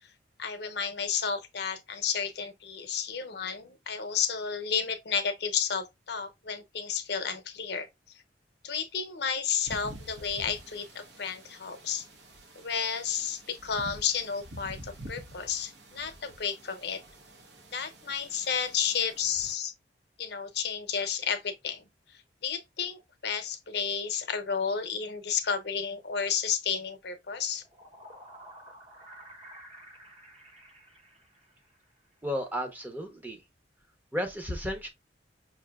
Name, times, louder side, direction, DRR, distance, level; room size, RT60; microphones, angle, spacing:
voice 1, 0.4-7.9 8.6-12.0 12.6-17.0 17.7-19.7 20.2-27.6, left 7 dB, 65° left, 0.7 m, -32 dB
sound 1, 9.7-19.5, right 1 dB, 75° right, 1.0 m, -48 dB
sound 2, 27.5-31.9, right 1 dB, 35° right, 0.8 m, -51 dB
voice 2, 32.2-33.4 34.1-34.9, equal, 10° right, 0.7 m, -33 dB
5.7 x 2.7 x 2.2 m
head